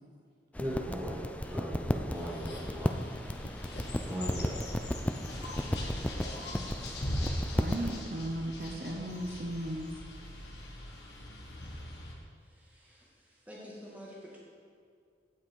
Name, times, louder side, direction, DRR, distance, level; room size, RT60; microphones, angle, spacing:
sound 1, 0.5-8.0, left 1 dB, 10° left, 0.3 m, -35 dB
voice 1, 0.6-3.0 4.0-4.7, equal, 25° right, -7 dB, 1.4 m, -38 dB
sound 2, 2.1-12.1, left 1 dB, 70° left, 1.6 m, -41 dB
voice 2, 7.4-10.0, right 1 dB, 55° right, 0 dB, 0.9 m, -36 dB
voice 3, 12.4-14.4, equal, 10° right, -5 dB, 2.1 m, -49 dB
16.0 x 5.9 x 4.6 m, 2.2 s
head